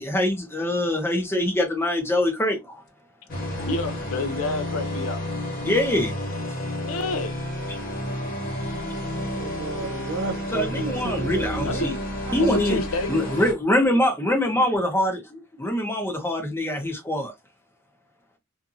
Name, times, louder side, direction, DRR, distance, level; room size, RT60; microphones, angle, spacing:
voice 1, 0.0-2.8 3.6-3.7 5.6-6.1 9.7-9.9 10.5-11.9 12.3-12.8 13.1-17.3, left 1 dB, 10° left, 0.8 m, -24 dB
sound 1, 3.3-13.5, left 1 dB, 45° left, 1.0 m, -30 dB
voice 2, 3.7-5.3 6.8-7.3 11.6-11.9 12.4-13.2, left 2 dB, 85° left, 0.5 m, -29 dB
voice 3, 9.3-11.9 12.3-12.4, right 3 dB, 85° right, 0.9 m, -33 dB
2.6 x 2.5 x 2.6 m
head